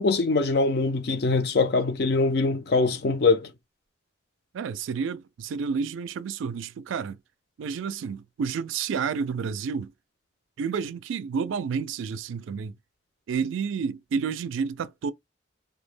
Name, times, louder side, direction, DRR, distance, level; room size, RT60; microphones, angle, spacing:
voice 1, 0.0-3.5, left 3 dB, 55° left, 0.5 m, -23 dB
voice 2, 4.5-7.2 7.6-9.9 10.6-12.7 13.3-15.1, right 6 dB, 85° right, 0.3 m, -30 dB
2.2 x 2.1 x 3.2 m
head